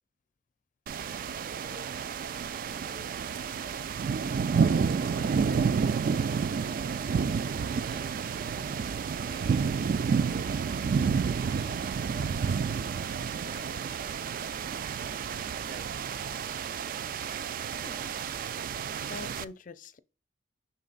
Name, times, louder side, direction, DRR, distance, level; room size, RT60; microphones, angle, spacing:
sound 1, 0.9-19.4, right 6 dB, 50° right, 0.3 m, -30 dB
voice 1, 4.6-5.9 7.5-8.8 9.2-9.8 10.3-12.6 13.0-14.2 14.9-15.1 15.6-16.5, right 1 dB, 70° right, 1.9 m, -52 dB
voice 2, 17.8-18.2 19.1-20.0, left 4 dB, 45° left, 0.4 m, -45 dB
6.2 x 4.2 x 3.8 m
head